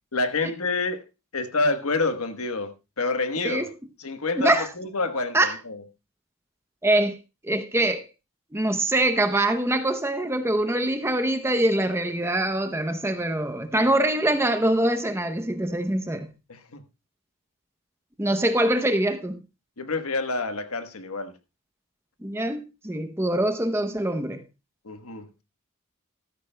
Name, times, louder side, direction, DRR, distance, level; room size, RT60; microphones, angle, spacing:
voice 1, 0.1-1.0 1.3-3.6 4.0-5.8 13.8-13.9 16.5-16.8 19.8-21.3 24.8-25.3, left 3 dB, 80° left, 1.2 m, -28 dB
voice 2, 4.4-4.7 5.3-5.5 6.8-7.2 7.4-8.1 8.5-16.3 18.2-19.4 22.2-24.4, right 1 dB, 10° right, 0.7 m, -24 dB
14.0 x 13.0 x 2.2 m
head